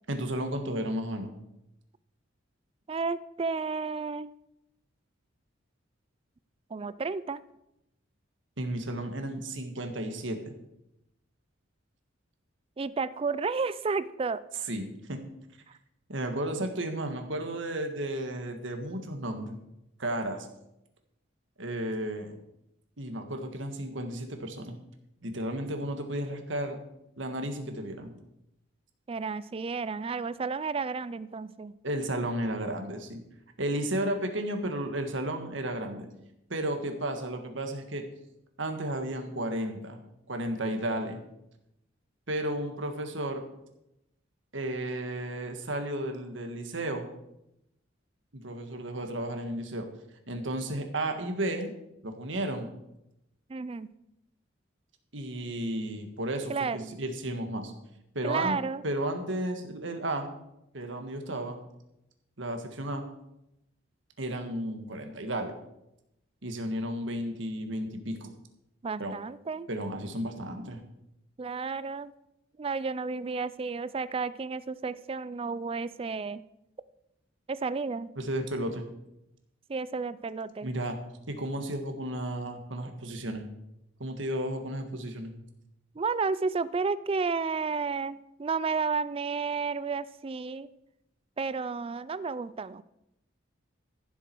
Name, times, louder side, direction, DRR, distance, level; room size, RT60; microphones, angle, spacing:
voice 1, 0.1-1.3 8.6-10.5 14.7-15.2 16.1-19.6 20.0-20.5 21.6-22.4 23.0-24.8 25.2-26.8 27.2-28.1 31.8-33.2 33.6-36.1 36.5-38.0 38.6-40.0 40.3-41.2 42.3-43.4 44.5-47.1 48.3-49.9 50.3-51.7 52.0-52.7 55.1-57.7 58.1-58.6 58.8-60.3 60.7-61.6 62.4-63.1 64.2-65.5 66.4-68.3 69.0-69.2 69.7-70.8 78.2-78.8 80.6-81.0 81.3-83.5 84.0-85.3, right 1 dB, 65° right, 5 dB, 1.7 m, -33 dB
voice 2, 2.9-4.3 6.7-7.4 12.8-14.4 29.1-31.7 53.5-53.9 56.5-57.0 58.2-58.8 68.8-69.7 71.4-72.1 72.6-76.4 77.5-78.1 79.7-80.7 86.0-90.7 91.4-92.8, right 4 dB, 30° right, 16 dB, 0.4 m, -32 dB
15.0 x 7.5 x 4.6 m, 0.85 s
head